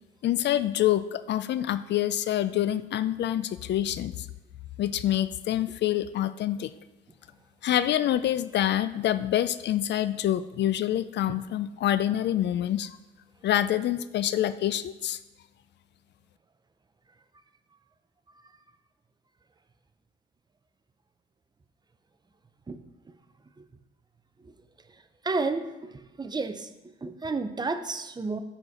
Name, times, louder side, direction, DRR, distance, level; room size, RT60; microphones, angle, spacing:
voice 1, 0.2-4.1 4.8-6.7 7.6-13.0 13.4-15.2, left 12 dB, 60° left, 14 dB, 0.4 m, -26 dB
voice 2, 25.2-26.7 27.0-28.4, right 3 dB, 20° right, 10 dB, 0.6 m, -31 dB
8.7 x 4.3 x 5.0 m, 1.0 s
cardioid pair, 90°, 20 cm